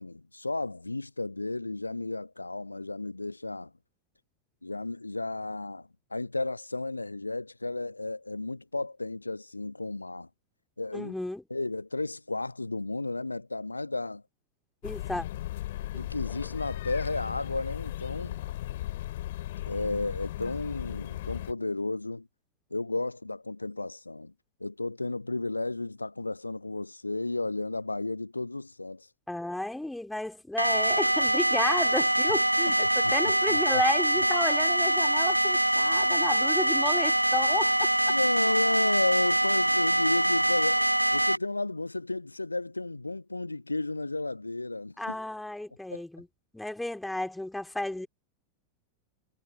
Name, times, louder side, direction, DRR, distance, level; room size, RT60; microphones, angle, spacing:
voice 1, 0.0-3.7 4.6-10.3 10.8-11.1 11.5-14.2 15.9-18.4 19.7-22.3 22.7-24.3 24.6-29.1 32.3-32.4 32.7-33.2 33.5-33.8 38.1-45.2 45.9-46.0, left 2 dB, 85° left, 1.1 m, -33 dB
voice 2, 10.9-11.4 14.8-15.3 15.9-16.1 29.3-37.9 45.0-46.3 46.5-48.1, left 1 dB, 5° left, 3.2 m, -32 dB
sound 1, 14.8-21.5, left 15 dB, 55° left, 3.8 m, -36 dB
sound 2, 30.6-41.4, right 1 dB, 85° right, 1.1 m, -24 dB
figure-of-eight pair, 90°, 0 cm